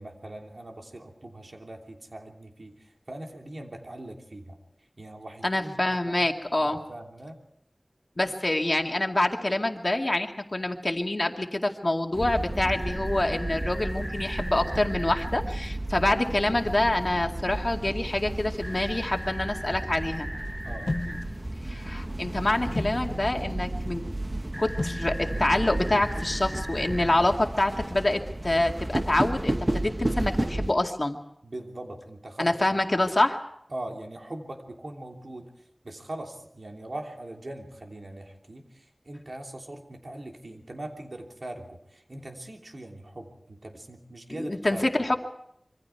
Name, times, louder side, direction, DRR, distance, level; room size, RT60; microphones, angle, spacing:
voice 1, 0.0-4.6 5.0-6.2 6.6-7.4 20.6-21.2 31.4-32.8 33.7-35.5 35.8-44.8, right 1 dB, 80° right, 2 dB, 3.1 m, -41 dB
voice 2, 5.4-6.8 8.2-20.3 21.6-24.0 24.6-31.2 32.4-33.4 44.3-45.2, left 1 dB, 50° left, 3 dB, 2.2 m, -26 dB
sound 1, 12.1-30.7, right 1 dB, 40° right, 1.3 m, -32 dB
sound 2, 12.7-15.3 18.6-21.2 24.5-27.1, equal, 15° right, 1.8 m, -40 dB
sound 3, 20.9-26.9, left 2 dB, 65° left, 0.8 m, -38 dB
26.5 x 24.0 x 4.7 m, 0.73 s
wide cardioid pair, 45°, 0 cm